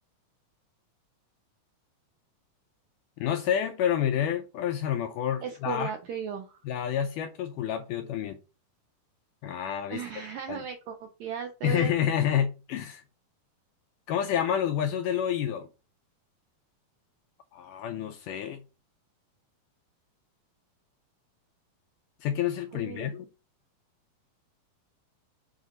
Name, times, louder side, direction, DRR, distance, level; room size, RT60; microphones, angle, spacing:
voice 1, 3.2-5.9 6.7-8.4 9.4-10.0 10.5-10.6 11.6-13.0 14.1-15.7 17.5-18.6 22.2-23.3, left 9 dB, 80° left, 1.9 m, -29 dB
voice 2, 5.4-6.6 9.9-11.9 22.7-23.1, right 7 dB, 80° right, 1.7 m, -36 dB
7.6 x 3.0 x 5.0 m
omnidirectional pair, 4.2 m